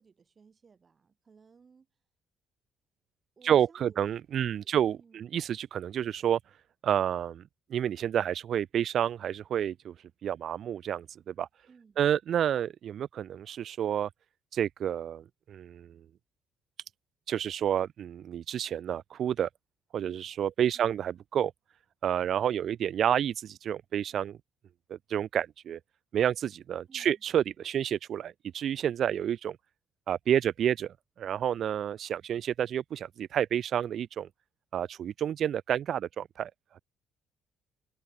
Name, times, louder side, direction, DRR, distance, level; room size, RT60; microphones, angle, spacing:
voice 1, 0.0-1.9 3.4-4.0 4.4-5.2 11.7-12.0 20.7-21.0 26.9-27.2, right 5 dB, 30° right, 6.5 m, -59 dB
voice 2, 3.4-6.4 6.8-7.4 7.7-9.9 10.2-11.5 12.0-14.1 14.5-16.0 17.3-19.5 19.9-21.5 22.0-24.4 24.9-25.8 26.1-29.6 30.1-34.3 34.7-36.5, right 9 dB, 50° right, 0.7 m, -29 dB
cardioid pair, 145°, 0 cm